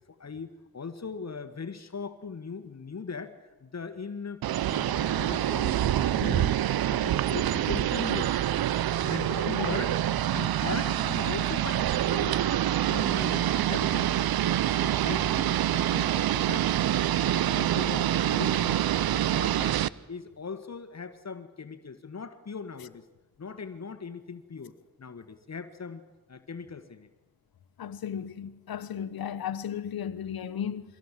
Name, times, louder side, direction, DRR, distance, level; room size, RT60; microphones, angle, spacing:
voice 1, 0.1-3.3 3.6-4.4 4.7-6.6 6.9-8.3 9.0-10.0 10.3-14.3 14.7-16.7 17.2-18.9 19.1-19.8 20.1-23.0 23.4-24.7 25.0-26.0 26.3-27.1, left 5 dB, 45° left, 1.6 m, -39 dB
sound 1, 4.4-19.9, right 12 dB, 75° right, 0.7 m, -26 dB
voice 2, 9.5-9.8 27.8-30.8, left 9 dB, 75° left, 1.1 m, -34 dB
24.0 x 17.0 x 7.5 m
cardioid pair, 65°, 37 cm